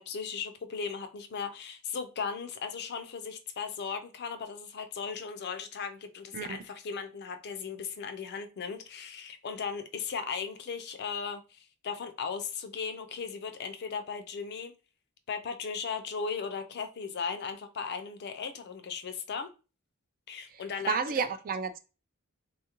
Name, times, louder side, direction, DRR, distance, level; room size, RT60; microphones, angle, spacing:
voice 1, 0.0-14.7 15.3-19.5 20.3-21.0, left 5 dB, 50° left, 0.4 m, -37 dB
voice 2, 20.9-21.8, right 5 dB, 40° right, 0.3 m, -30 dB
3.7 x 2.3 x 2.9 m
head